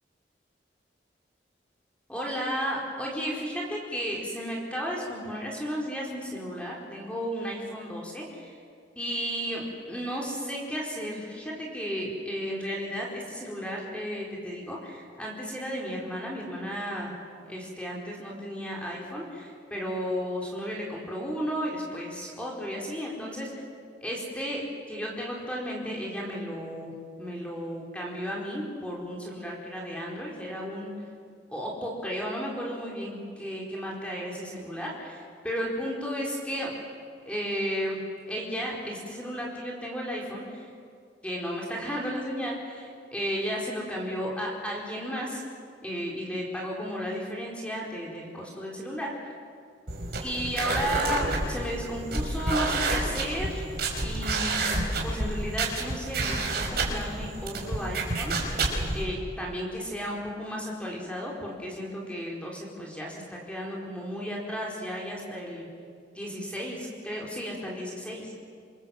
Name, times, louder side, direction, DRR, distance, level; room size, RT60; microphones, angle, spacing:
voice 1, 2.1-8.6 9.0-17.1 17.5-23.5 24.0-24.6 24.9-26.9 27.2-30.9 31.5-36.7 37.2-38.0 38.3-40.7 41.2-45.4 45.8-49.3 50.2-53.6 54.0-54.8 55.0-58.6 58.9-65.7 66.1-68.3, equal, 5° left, -3 dB, 4.6 m, -34 dB
sound 1, 49.9-59.0, right 2 dB, 60° right, 5.2 m, -29 dB
27.0 x 27.0 x 7.9 m, 2.3 s
head